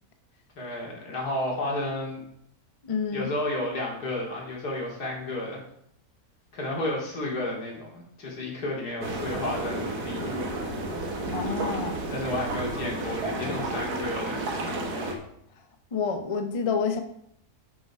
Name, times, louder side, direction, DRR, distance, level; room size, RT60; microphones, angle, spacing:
voice 1, 0.6-2.2 3.1-5.6 6.5-10.4 12.1-14.4, left 1 dB, 85° left, -2 dB, 3.1 m, -32 dB
voice 2, 2.8-3.3 11.3-12.0 15.9-17.0, left 5 dB, 30° left, 6 dB, 0.7 m, -28 dB
sound 1, 9.0-15.1, right 2 dB, 80° right, 2.0 m, -32 dB
8.3 x 7.0 x 4.7 m, 0.71 s
omnidirectional pair, 1.6 m